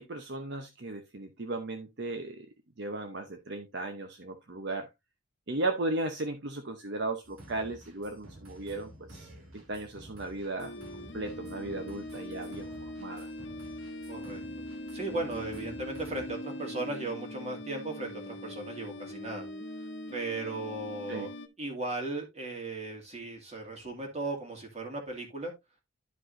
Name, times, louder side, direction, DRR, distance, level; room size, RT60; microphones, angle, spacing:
voice 1, 0.0-2.5 2.8-4.9 5.5-10.7 11.1-12.7 13.0-13.3 21.1-21.3, right 2 dB, 55° right, 0.8 m, -36 dB
sound 1, 7.2-16.3, right 1 dB, 90° right, 2.3 m, -51 dB
sound 2, 10.6-21.5, left 1 dB, 60° left, 1.1 m, -42 dB
voice 2, 14.1-14.4 14.9-19.5 20.1-21.3 21.6-25.5, right 2 dB, 30° right, 2.2 m, -36 dB
11.5 x 5.2 x 2.6 m
head